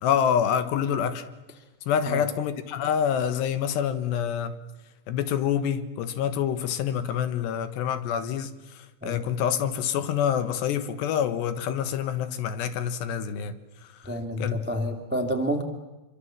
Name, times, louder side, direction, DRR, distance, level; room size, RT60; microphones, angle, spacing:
voice 1, 0.0-1.3 1.9-4.6 5.1-13.6 13.8-14.1 14.4-14.6, left 8 dB, 75° left, 3.4 m, -27 dB
voice 2, 14.0-15.6, equal, 10° right, 0.5 m, -29 dB
27.0 x 24.5 x 7.6 m
omnidirectional pair, 5.1 m